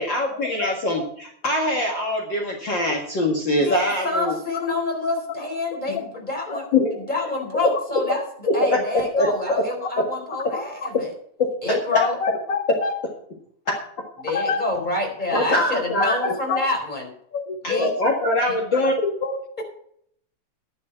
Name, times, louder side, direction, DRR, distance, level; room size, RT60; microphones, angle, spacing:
voice 1, 0.0-4.4 5.9-6.0 6.5-7.0 8.5-9.3 9.6-9.7 10.0-10.1 11.4-11.5 13.7-13.8 15.3-16.2 17.6-18.9, left 1 dB, 45° left, 0 dB, 2.3 m, -23 dB
voice 2, 3.6-6.8 7.1-8.2 8.5-11.1 11.6-12.2 14.2-17.1 17.6-17.9, left 2 dB, 15° left, 1 dB, 4.3 m, -27 dB
voice 3, 11.9-12.9 14.3-14.6 16.0-16.7 17.3-17.9 18.7-19.6, left 5 dB, 80° left, 6 dB, 0.7 m, -26 dB
12.0 x 11.0 x 4.5 m, 0.66 s
omnidirectional pair, 3.3 m